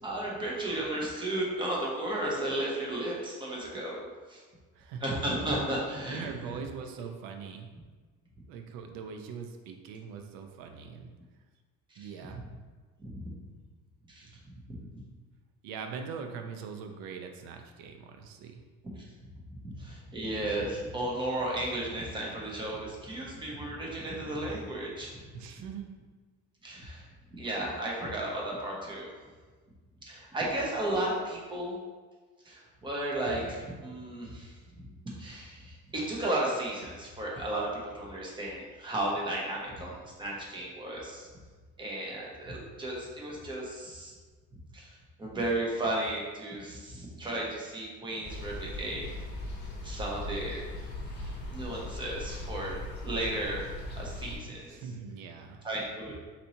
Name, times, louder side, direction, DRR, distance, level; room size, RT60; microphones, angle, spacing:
voice 1, 0.0-4.0 4.3-4.4 5.0-6.6 12.0-12.1 13.0-13.3 14.1-15.0 18.8-19.0 19.7-25.1 26.6-27.0 27.3-29.1 30.1-31.7 32.5-34.5 35.2-41.3 41.8-44.1 44.7-49.0 49.8-50.8 51.2-52.8 53.0-54.7 55.6-56.2, right 1 dB, 15° right, -3 dB, 0.8 m, -34 dB
voice 2, 4.8-5.4 6.1-7.7 8.5-11.1 12.0-12.4 14.2-14.3 15.6-18.6 25.3-25.9 54.7-55.6, right 6 dB, 90° right, 5 dB, 0.6 m, -41 dB
sound 1, 48.2-54.4, left 1 dB, 30° left, 0.9 m, -39 dB
4.4 x 4.2 x 2.8 m, 1.4 s
cardioid pair, 155°, 33 cm